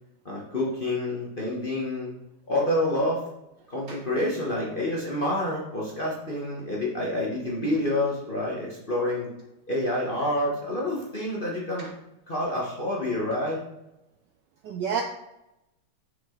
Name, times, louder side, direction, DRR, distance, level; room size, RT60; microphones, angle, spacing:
voice 1, 0.2-2.1 2.5-3.2 3.7-9.3 9.7-11.9 12.3-13.6, left 1 dB, 35° left, -4 dB, 0.9 m, -28 dB
voice 2, 14.6-15.0, right 7 dB, 80° right, 4 dB, 1.0 m, -30 dB
6.0 x 5.8 x 3.7 m, 0.89 s
omnidirectional pair, 2.4 m